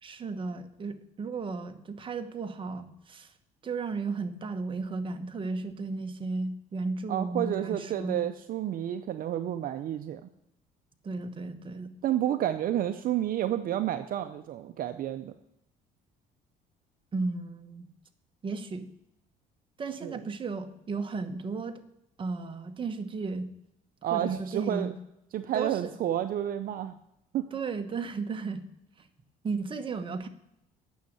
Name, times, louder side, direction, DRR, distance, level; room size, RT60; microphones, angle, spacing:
voice 1, 0.0-3.3 3.6-8.2 11.0-11.9 17.1-17.9 18.4-18.9 19.8-21.8 22.2-23.5 24.1-24.9 25.5-25.9 27.5-28.6 29.0-29.1 29.4-30.3, right 4 dB, 30° right, 7 dB, 1.1 m, -34 dB
voice 2, 7.1-10.3 12.0-15.3 20.0-20.2 24.0-24.9 25.3-26.9 27.3-27.5, right 11 dB, 55° right, 9 dB, 0.6 m, -30 dB
9.3 x 6.4 x 8.5 m, 0.81 s
cardioid pair, 110°, 17 cm